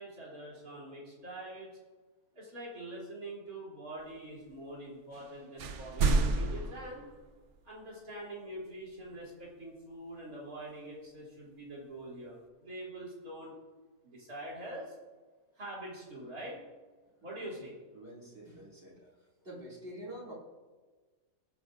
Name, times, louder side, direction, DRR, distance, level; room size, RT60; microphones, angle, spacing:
voice 1, 0.0-1.8 2.4-7.1 7.6-13.5 14.0-14.9 15.6-16.6 17.2-17.8, right 1 dB, 90° right, -5 dB, 3.9 m, -44 dB
sound 1, 5.1-5.3 5.6-7.6, right 3 dB, 60° right, 1.1 m, -30 dB
voice 2, 17.9-19.1 19.4-20.3, right 1 dB, 40° right, -6 dB, 3.1 m, -47 dB
22.0 x 8.2 x 2.6 m, 1.3 s
omnidirectional pair, 1.5 m